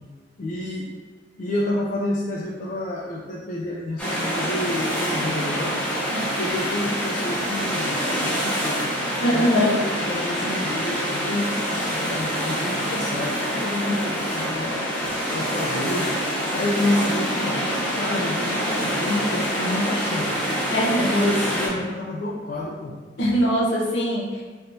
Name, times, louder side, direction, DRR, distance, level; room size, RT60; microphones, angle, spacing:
voice 1, 0.4-0.9 1.4-5.8 6.2-8.9 9.3-14.8 15.3-16.1 16.5-17.7 17.9-20.4 21.0-23.0, left 1 dB, 45° left, -4 dB, 0.4 m, -28 dB
sound 1, 4.0-21.7, equal, 5° left, 0.7 m, -26 dB
voice 2, 9.2-9.7 20.7-21.2 23.2-24.4, equal, 70° left, -3 dB, 0.7 m, -22 dB
3.3 x 2.8 x 2.6 m, 1.4 s
head